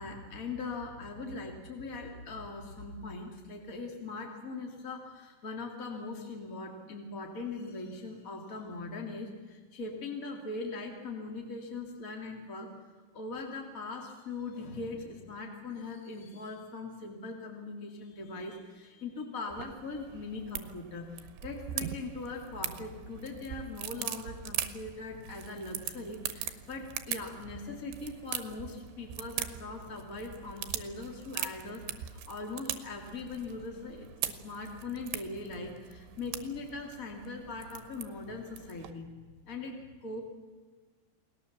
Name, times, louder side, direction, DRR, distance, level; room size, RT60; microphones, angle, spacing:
voice 1, 0.0-12.7 13.1-39.1 39.4-40.2, left 3 dB, 30° left, 1 dB, 1.7 m, -41 dB
sound 1, 19.5-38.9, right 11 dB, 90° right, 3.3 m, -41 dB
30.0 x 19.5 x 7.1 m, 1.4 s
omnidirectional pair, 4.8 m